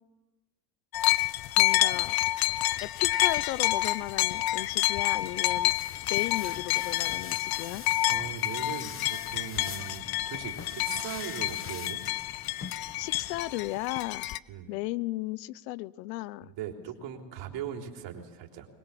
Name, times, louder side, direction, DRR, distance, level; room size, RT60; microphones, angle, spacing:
sound 1, 0.9-14.4, left 15 dB, 50° left, 0.8 m, -28 dB
voice 1, 1.6-2.1 2.8-5.7 6.1-7.8 13.0-14.3 14.7-16.5, left 18 dB, 80° left, 20 dB, 0.9 m, -35 dB
sound 2, 5.5-13.7, left 6 dB, 25° left, 1.5 m, -45 dB
voice 2, 8.1-12.0 14.5-14.7 16.6-18.7, right 8 dB, 60° right, 3 dB, 3.8 m, -39 dB
23.5 x 21.0 x 7.4 m, 1.2 s
supercardioid pair, 90°, 49 cm